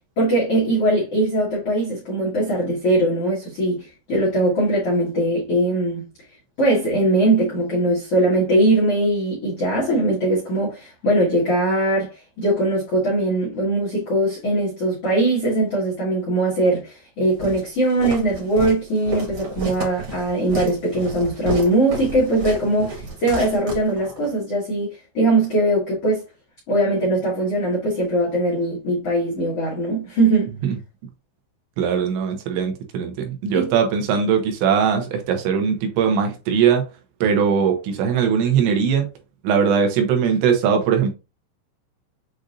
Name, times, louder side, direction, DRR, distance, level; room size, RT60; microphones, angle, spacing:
voice 1, 0.2-6.0 6.6-26.2 26.7-30.5 33.5-33.7, right 1 dB, 85° left, 1.3 m, -21 dB
Walk footsteps, 17.4-24.3, right 2 dB, 50° right, 1.7 m, -31 dB
voice 2, 31.8-36.8 37.2-39.1 39.4-41.1, right 7 dB, 80° right, 3.0 m, -20 dB
7.7 x 2.6 x 2.5 m
omnidirectional pair, 5.3 m